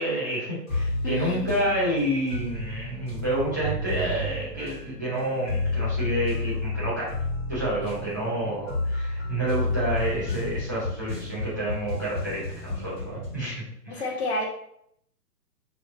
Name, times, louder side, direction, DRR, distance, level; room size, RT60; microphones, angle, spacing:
voice 1, 0.0-7.1 7.5-14.0, right 1 dB, 15° right, -11 dB, 0.4 m, -29 dB
sound 1, 0.7-13.5, left 2 dB, 20° left, 1.4 m, -31 dB
voice 2, 1.0-1.4 1.6-1.7 3.0-3.1 13.9-14.4, left 1 dB, 40° left, 0 dB, 0.6 m, -30 dB
3.3 x 2.9 x 2.5 m, 0.71 s
hypercardioid pair, 140°, 48 cm